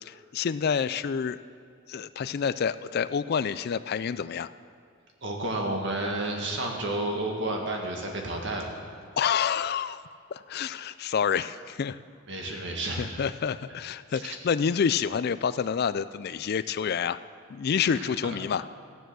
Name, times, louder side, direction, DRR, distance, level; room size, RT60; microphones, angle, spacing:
voice 1, 0.0-1.4 1.9-4.5 9.2-10.0 10.3-12.0 12.4-12.5 13.0-17.2 17.5-18.6, left 7 dB, 45° left, 15 dB, 0.3 m, -28 dB
voice 2, 5.2-8.7 12.3-13.2 14.1-14.4 17.9-18.4, right 2 dB, 55° right, 1 dB, 1.9 m, -31 dB
14.0 x 10.5 x 6.2 m, 2.2 s
head